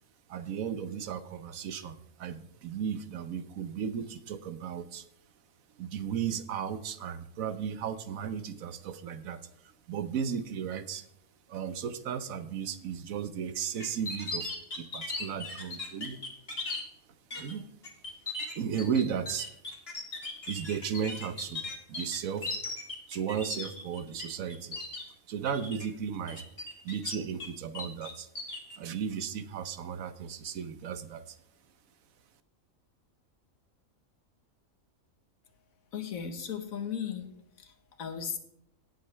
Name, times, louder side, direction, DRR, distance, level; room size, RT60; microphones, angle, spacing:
voice 1, 0.3-5.1 5.8-11.1 11.5-16.2 17.4-17.7 18.5-19.5 20.5-21.6 21.9-22.6 23.1-24.8 25.3-26.5 26.8-28.3 28.8-31.4, right 7 dB, 80° right, 12 dB, 1.3 m, -35 dB
sound 1, 13.8-16.8 17.3-17.5 17.8-24.2 24.5-25.0 25.4-25.9 26.3-27.5 27.7-28.8, left 3 dB, 45° left, 2.2 m, -37 dB
voice 2, 35.9-38.4, left 8 dB, 85° left, 7 dB, 1.6 m, -37 dB
18.0 x 7.9 x 3.3 m, 0.74 s
omnidirectional pair, 1.4 m